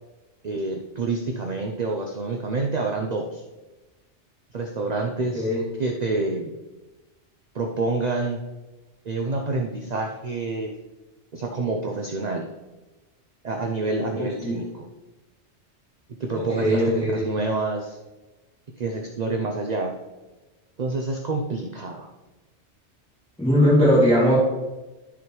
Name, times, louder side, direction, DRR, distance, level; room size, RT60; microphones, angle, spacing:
voice 1, 0.4-3.4 4.5-5.5 5.8-6.5 7.5-8.4 9.0-10.8 11.3-12.5 13.4-14.8 16.2-18.0 18.8-19.9 20.8-22.1, right 3 dB, 45° right, 2 dB, 0.7 m, -27 dB
voice 2, 14.2-14.5 16.3-17.2 23.4-24.3, equal, 5° left, -8 dB, 2.4 m, -20 dB
12.0 x 5.9 x 3.1 m, 1.1 s
omnidirectional pair, 1.2 m